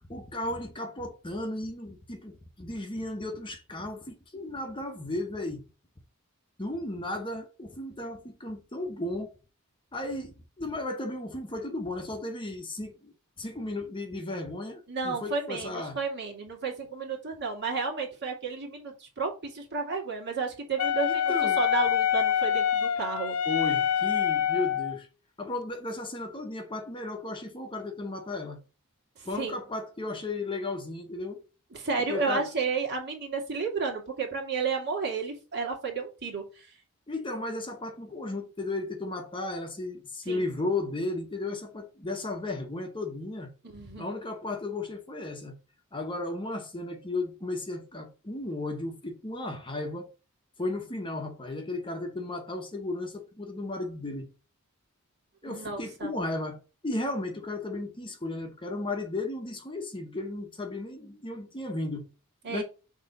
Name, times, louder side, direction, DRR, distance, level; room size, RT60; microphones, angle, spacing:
voice 1, 0.1-5.6 6.6-9.3 9.9-13.1 13.4-16.0 21.1-21.6 23.5-25.1 25.4-28.6 29.3-31.4 32.1-32.4 37.1-43.5 44.0-45.6 45.9-50.1 50.6-54.3 55.4-62.1 62.4-62.6, left 2 dB, 20° left, 1.0 m, -35 dB
voice 2, 14.9-23.4 29.2-29.6 31.7-36.7 40.3-40.4 43.7-44.1 55.5-56.1 62.4-62.6, right 4 dB, 50° right, 2.2 m, -32 dB
Wind instrument woodwind instrument, 20.8-25.0, left 9 dB, 70° left, 0.5 m, -26 dB
6.6 x 3.0 x 5.1 m
head